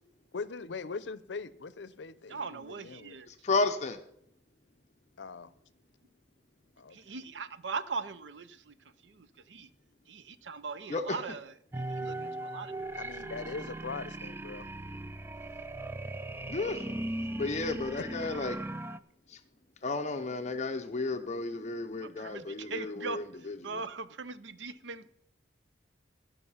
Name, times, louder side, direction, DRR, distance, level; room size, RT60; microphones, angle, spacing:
voice 1, 0.3-3.2 5.2-5.5 6.8-7.2 12.9-14.7 18.0-18.1, left 4 dB, 80° left, 0.6 m, -41 dB
voice 2, 2.3-3.3 6.9-8.7 9.0-9.7 10.1-11.5 11.9-12.7 22.0-23.2 23.6-25.1, right 4 dB, 80° right, 0.6 m, -40 dB
voice 3, 3.3-4.0 10.9-11.2 16.5-16.8 17.4-18.6 19.3-19.4 19.8-23.8, left 3 dB, 40° left, 0.6 m, -33 dB
sound 1, 11.7-19.0, right 2 dB, 10° right, 0.3 m, -38 dB
16.0 x 5.4 x 5.6 m
head